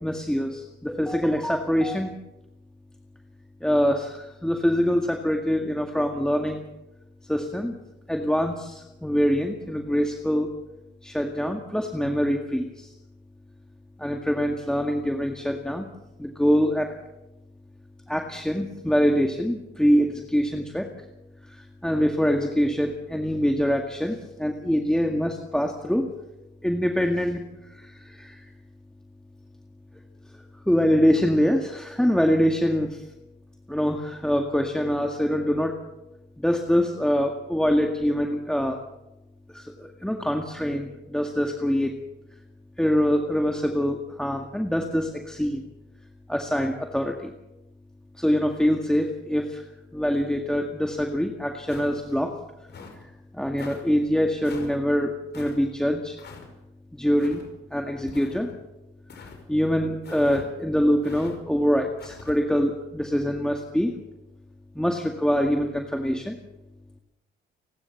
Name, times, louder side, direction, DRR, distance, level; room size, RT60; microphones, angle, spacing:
voice 1, 0.0-2.2 3.6-6.6 7.2-7.7 8.1-10.6 11.0-12.9 14.0-15.9 16.2-16.9 18.1-20.9 21.4-26.1 26.6-28.5 30.7-33.0 33.7-35.8 36.4-38.8 39.5-42.0 42.8-45.6 46.3-47.3 48.2-49.6 49.9-52.4 53.3-56.2 56.9-57.4 57.7-58.5 59.2-63.9 64.8-66.4, equal, 5° left, 3 dB, 1.9 m, -24 dB
sound 1, 51.7-52.2 52.7-53.0 53.6-53.8 54.4-54.8 55.3-55.6 56.2-56.5 57.2-57.5 58.1-58.6 59.1-59.4 60.0-60.5 61.0-61.3 62.0-62.4, left 5 dB, 60° left, 5.5 m, -43 dB
30.0 x 12.0 x 7.2 m, 0.95 s
cardioid pair, 90°, 20 cm